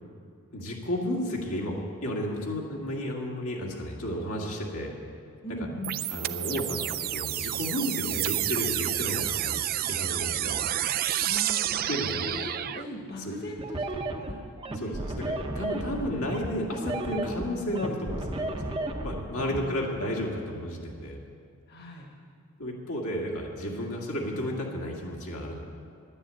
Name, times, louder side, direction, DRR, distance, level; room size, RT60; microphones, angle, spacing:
voice 1, 0.5-4.9 6.1-9.6 9.9-10.6 11.9-12.3 13.2-13.3 14.8-21.2 22.6-25.7, equal, 75° left, -2 dB, 2.0 m, -32 dB
voice 2, 5.4-6.0 11.2-14.4 14.7-14.9 19.3-20.0 21.7-22.1, left 1 dB, 45° left, 1 dB, 1.4 m, -40 dB
sound 1, 5.8-12.8, right 13 dB, 40° right, 0.3 m, -29 dB
sound 2, 13.6-19.6, right 2 dB, 25° right, 0.7 m, -33 dB
11.0 x 9.8 x 8.3 m, 2.2 s
head